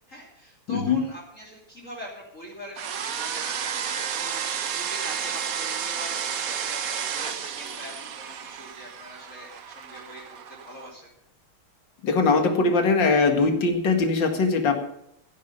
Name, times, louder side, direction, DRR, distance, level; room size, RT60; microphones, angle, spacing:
voice 1, 0.1-10.2 10.5-11.1, equal, 35° left, -3 dB, 3.3 m, -43 dB
voice 2, 0.7-1.0 12.0-14.7, left 4 dB, 55° left, 5 dB, 2.6 m, -21 dB
sound 1, 2.8-10.9, right 8 dB, 55° right, 1.0 m, -32 dB
15.5 x 11.0 x 5.6 m, 0.78 s
omnidirectional pair, 2.4 m